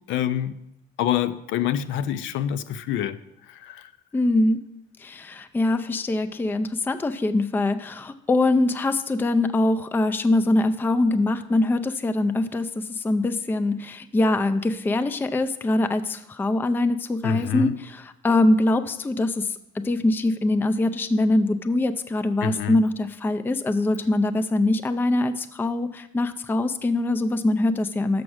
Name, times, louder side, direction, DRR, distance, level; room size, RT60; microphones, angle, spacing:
voice 1, 0.1-0.6 1.0-3.2 3.5-3.9 17.2-17.8 22.4-22.8, left 10 dB, 75° left, 0.5 m, -26 dB
voice 2, 4.1-4.6 5.0-19.6 19.8-28.2, left 2 dB, 10° left, 0.4 m, -23 dB
6.2 x 6.0 x 6.3 m
cardioid pair, 100°, 20 cm